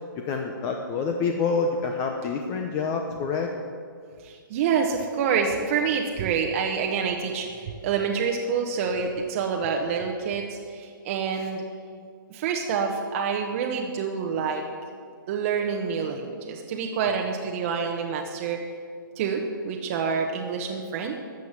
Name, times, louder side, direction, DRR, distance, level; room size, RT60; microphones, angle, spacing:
voice 1, 0.2-3.5, left 4 dB, 25° left, 3 dB, 0.8 m, -27 dB
voice 2, 4.2-11.6 12.3-14.6 15.3-18.6 19.2-21.2, right 6 dB, 35° right, 2 dB, 1.0 m, -27 dB
13.0 x 7.4 x 7.2 m, 2.2 s
hypercardioid pair, 150°, 12 cm